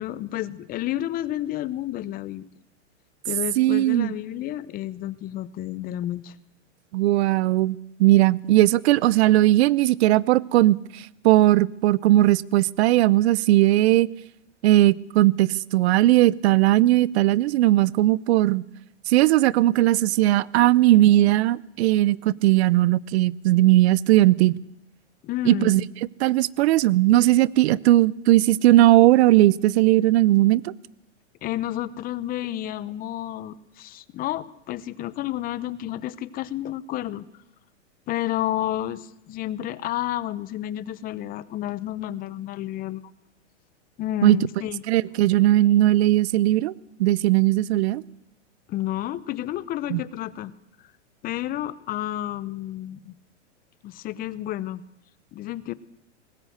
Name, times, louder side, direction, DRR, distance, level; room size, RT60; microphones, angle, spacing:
voice 1, 0.0-2.5 3.2-6.3 25.2-25.9 31.4-37.3 38.1-43.1 44.0-44.9 48.7-50.5 51.2-53.1 53.8-54.8 55.3-55.7, left 13 dB, 25° left, 18 dB, 0.7 m, -30 dB
voice 2, 3.6-4.1 6.9-14.1 14.6-18.6 19.1-24.6 25.5-25.8 26.2-30.7 44.2-44.4 44.9-46.7 47.0-48.0 49.9-50.0, right 15 dB, 60° right, 24 dB, 0.7 m, -18 dB
19.5 x 17.5 x 8.0 m, 0.82 s
supercardioid pair, 140°, 36 cm